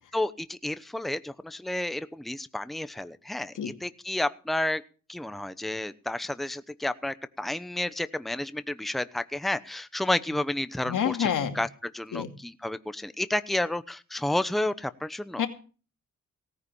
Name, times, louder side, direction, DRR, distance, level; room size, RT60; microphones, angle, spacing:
voice 1, 0.1-4.8 5.1-11.7 11.9-15.4, left 1 dB, ahead, 0.9 m, -31 dB
voice 2, 10.9-11.6 12.1-12.3 15.4-15.5, left 8 dB, 85° left, 2.5 m, -27 dB
17.5 x 9.7 x 5.6 m
cardioid pair, 90°, 31 cm